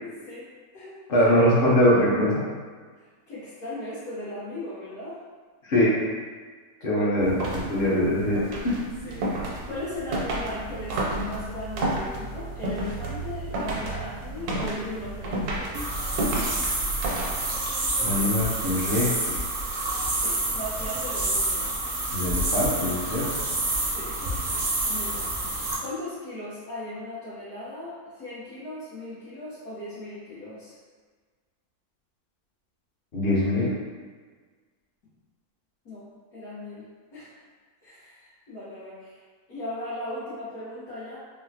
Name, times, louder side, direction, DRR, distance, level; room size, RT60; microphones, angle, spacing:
voice 1, 0.0-0.5 0.7-0.9 3.3-5.2 6.9-7.1 9.0-15.7 20.2-21.7 23.8-25.3 25.8-30.7 35.8-37.3 37.8-39.2 39.5-41.2, left 1 dB, 70° left, -13 dB, 1.4 m, -37 dB
voice 2, 1.1-2.5 5.6-6.1 6.8-8.8 18.0-19.4 22.1-23.3 33.1-33.7, left 1 dB, 50° left, -7 dB, 0.7 m, -23 dB
sound 1, 7.2-17.7, right 2 dB, 85° right, 1.1 m, -32 dB
sound 2, 15.7-25.7, right 2 dB, 55° right, 0.5 m, -28 dB
3.7 x 2.0 x 2.7 m, 1.5 s
omnidirectional pair, 1.6 m